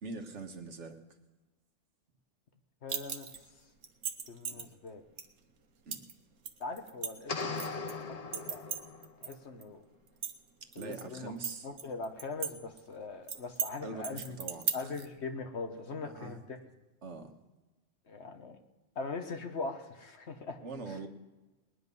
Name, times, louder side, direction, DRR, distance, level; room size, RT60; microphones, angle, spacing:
voice 1, 0.0-1.0 4.5-4.7 5.8-6.0 10.6-11.7 13.8-14.9 16.0-16.4 17.0-17.3 20.6-21.1, right 3 dB, 70° right, 5 dB, 1.5 m, -43 dB
voice 2, 2.8-3.3 4.3-5.0 6.6-7.9 8.3-8.8 9.2-9.8 10.8-11.3 11.6-14.4 14.7-16.6 18.1-18.6 18.9-20.6 20.9-21.0, left 4 dB, 60° left, 6 dB, 1.4 m, -41 dB
sound 1, 2.9-3.4 3.8-4.6 5.2-5.3 5.9-6.1 6.4-7.9 8.3-9.3 9.6-9.7 10.1-11.0 11.4-12.5 12.8-12.9 13.3-13.7 14.0-15.0, right 7 dB, 90° right, 1.4 m, -36 dB
sound 2, 7.3-9.2, left 4 dB, 40° left, 0.7 m, -38 dB
20.5 x 10.5 x 5.4 m, 1.2 s
omnidirectional pair, 1.3 m